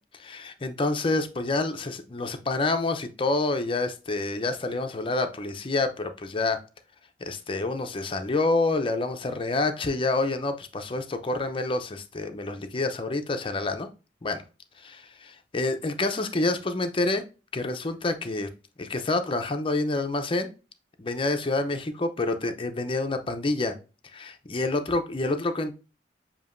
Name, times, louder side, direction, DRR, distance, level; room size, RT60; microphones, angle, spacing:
voice 1, 0.1-6.6 7.2-13.9 14.2-14.4 14.8-17.2 17.5-18.5 18.8-20.5 21.0-23.8 24.1-25.7, left 2 dB, 30° left, 7 dB, 0.6 m, -28 dB
7.0 x 2.8 x 2.5 m, 0.31 s
head